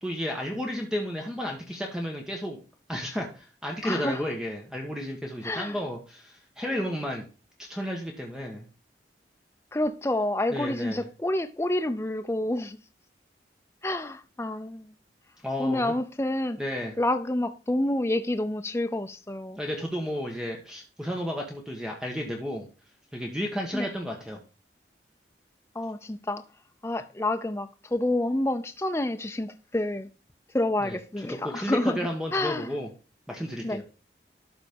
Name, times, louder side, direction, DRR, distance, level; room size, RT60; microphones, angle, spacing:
voice 1, 0.0-2.6 2.9-7.2 7.7-8.7 10.5-11.1 15.4-15.9 16.6-17.0 19.6-22.7 23.1-24.4 30.8-32.9 33.3-33.8, equal, 5° right, 1.3 m, -32 dB
voice 2, 3.8-4.3 5.4-5.8 9.7-12.8 13.8-14.9 15.6-16.6 17.0-19.6 23.7-23.9 25.7-26.4 26.8-30.1 30.5-32.7 33.6-33.8, left 1 dB, 15° left, 0.5 m, -28 dB
12.5 x 4.1 x 5.2 m
head